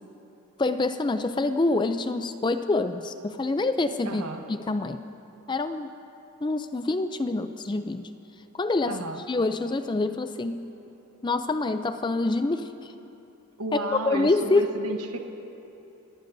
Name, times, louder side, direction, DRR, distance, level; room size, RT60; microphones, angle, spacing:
voice 1, 0.6-4.2 4.5-5.0 5.5-5.9 6.4-8.1 8.5-9.0 9.3-10.6 11.2-12.9 14.1-14.6, left 2 dB, 20° left, 9 dB, 0.4 m, -26 dB
voice 2, 4.0-4.4 8.9-9.2 13.6-15.2, right 2 dB, 90° right, 4 dB, 1.1 m, -33 dB
29.0 x 18.5 x 2.7 m, 2.9 s
head